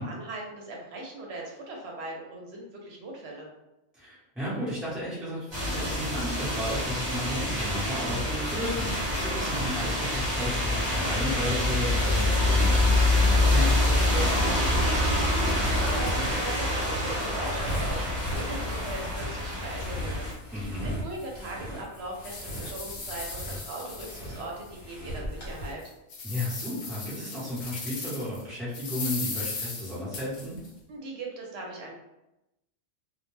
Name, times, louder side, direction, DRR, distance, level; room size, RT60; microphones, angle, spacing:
voice 1, 0.0-3.5 14.7-25.8 30.9-31.9, right 2 dB, 70° right, -1 dB, 0.9 m, -39 dB
voice 2, 3.9-14.4 20.5-20.9 26.2-30.6, left 1 dB, ahead, -9 dB, 0.8 m, -34 dB
sound 1, 5.5-20.3, left 1 dB, 25° right, 1.2 m, -26 dB
sound 2, 14.8-25.7, equal, 45° left, 1.2 m, -38 dB
sound 3, 20.6-20.7 21.2-21.3 21.8-24.7 25.1-25.2 25.7-28.4 28.7-30.7, left 3 dB, 60° left, 0.8 m, -38 dB
2.3 x 2.1 x 3.1 m, 0.92 s
omnidirectional pair, 1.2 m